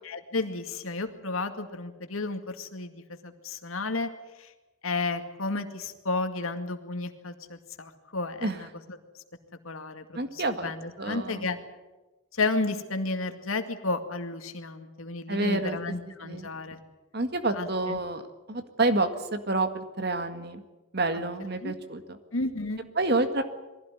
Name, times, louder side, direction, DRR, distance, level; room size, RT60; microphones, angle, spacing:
voice 1, 0.1-4.1 4.4-4.5 4.8-9.0 9.6-11.6 12.3-16.8 17.5-18.0 21.6-21.7 22.3-22.9, left 3 dB, 80° left, 7 dB, 2.2 m, -32 dB
voice 2, 10.2-10.7 11.0-11.5 15.3-15.8 16.2-16.5 17.1-18.2 18.5-20.6 20.9-22.2 23.0-23.4, right 2 dB, 50° right, 8 dB, 1.9 m, -28 dB
22.5 x 16.0 x 9.6 m, 1.1 s
head